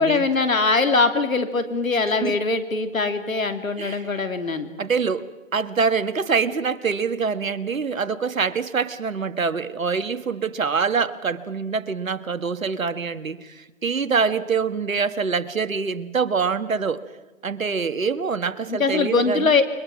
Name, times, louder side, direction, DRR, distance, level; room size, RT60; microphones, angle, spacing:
voice 1, 0.0-4.7 18.7-19.6, left 4 dB, 85° left, 8 dB, 3.0 m, -22 dB
voice 2, 3.8-4.1 4.8-5.3 5.5-17.0 17.4-19.5, right 5 dB, 80° right, 11 dB, 1.7 m, -25 dB
30.0 x 22.5 x 6.1 m, 1.2 s
hypercardioid pair, 165°, 40 cm